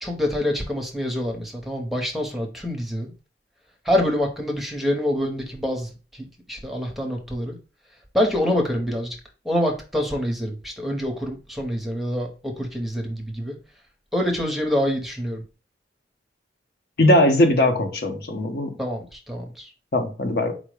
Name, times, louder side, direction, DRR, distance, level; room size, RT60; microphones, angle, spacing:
voice 1, 0.0-3.1 3.8-7.6 8.1-9.2 9.4-13.6 14.1-15.4 18.8-19.7, equal, ahead, 0.6 m, -26 dB
voice 2, 17.0-18.7 19.9-20.5, left 1 dB, 60° left, 0.7 m, -19 dB
4.5 x 2.0 x 4.6 m
head